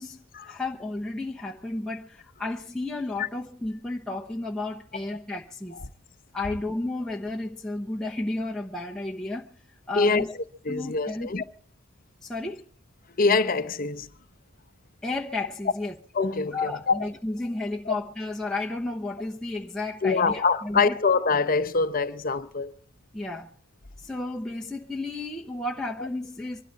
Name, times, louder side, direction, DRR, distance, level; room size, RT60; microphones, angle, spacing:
voice 1, 0.0-5.8 6.3-9.5 9.9-10.3 10.7-11.3 12.2-12.6 15.0-15.9 16.5-21.0 23.1-23.5 24.0-26.6, left 2 dB, 5° left, 1.0 m, -32 dB
voice 2, 10.6-11.4 13.2-14.1 16.1-17.0 17.9-18.0 20.0-22.7 26.0-26.1, left 4 dB, 45° left, 0.8 m, -24 dB
24.5 x 13.0 x 4.1 m
head